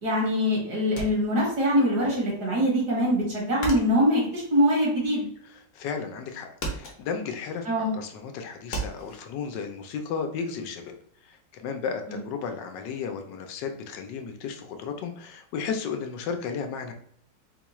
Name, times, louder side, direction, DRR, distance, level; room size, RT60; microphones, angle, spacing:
voice 1, 0.0-5.3 7.7-7.9 12.1-12.2, equal, 65° right, -3 dB, 2.0 m, -23 dB
sound 1, 1.0-2.0 2.3-5.5 5.9-6.3 6.5-9.2, right 2 dB, 55° left, 1.1 m, -36 dB
voice 2, 5.5-10.9 11.2-16.9, left 6 dB, 80° left, 5 dB, 1.2 m, -34 dB
4.2 x 2.3 x 3.0 m, 0.64 s
omnidirectional pair, 1.9 m